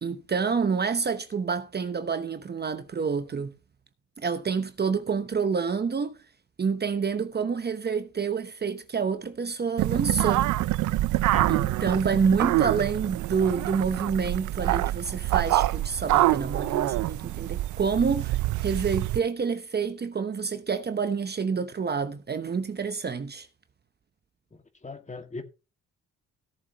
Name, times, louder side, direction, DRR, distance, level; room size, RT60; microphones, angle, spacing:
voice 1, 0.0-3.5 4.2-6.2 6.6-10.5 11.5-23.5, right 5 dB, 35° right, 1.0 m, -28 dB
sound 1, 9.8-19.2, right 16 dB, 75° right, 0.6 m, -26 dB
voice 2, 11.3-11.8 24.8-25.4, left 3 dB, 25° left, 2.1 m, -38 dB
17.5 x 7.5 x 3.0 m
cardioid pair, 90°, 30 cm